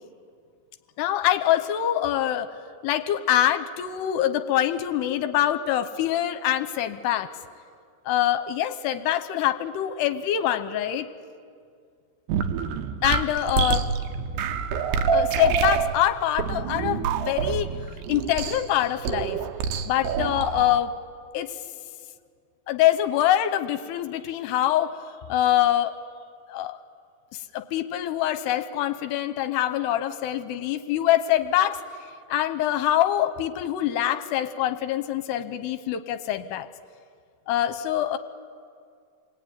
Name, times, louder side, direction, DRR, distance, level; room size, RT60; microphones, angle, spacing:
voice 1, 1.0-2.5 2.8-7.3 8.1-11.1 13.0-13.9 15.1-17.7 18.1-19.4 19.9-20.9 21.3-21.5 22.7-24.9 25.3-25.9 26.5-26.8 27.3-31.8 32.3-36.7 37.5-38.2, left 12 dB, 80° left, 10 dB, 2.7 m, -24 dB
sound 1, 12.3-20.8, right 6 dB, 75° right, 2.9 m, -27 dB
27.0 x 19.5 x 9.5 m, 2.2 s
omnidirectional pair, 5.1 m